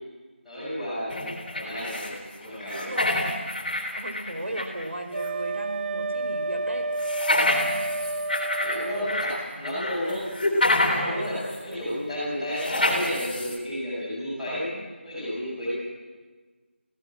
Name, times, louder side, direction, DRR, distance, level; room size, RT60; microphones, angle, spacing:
voice 1, 0.4-2.9 8.6-10.3 10.6-14.6 15.0-15.7, left 1 dB, ahead, -16 dB, 6.8 m, -32 dB
sound 1, 1.1-2.2 2.4-4.9 5.2-5.3 7.0-9.3 9.6-11.1 11.5-11.6 12.6-13.6, left 1 dB, 45° left, 3.5 m, -27 dB
voice 2, 2.7-3.3 3.9-6.9 8.9-9.2 9.5-9.8 10.8-11.4 14.7-14.8, right 1 dB, 75° right, 4 dB, 4.8 m, -36 dB
Wind instrument woodwind instrument, 5.1-9.4, right 2 dB, 55° right, 1.4 m, -30 dB
24.5 x 16.5 x 7.6 m, 1.4 s
figure-of-eight pair, 175°, 7 cm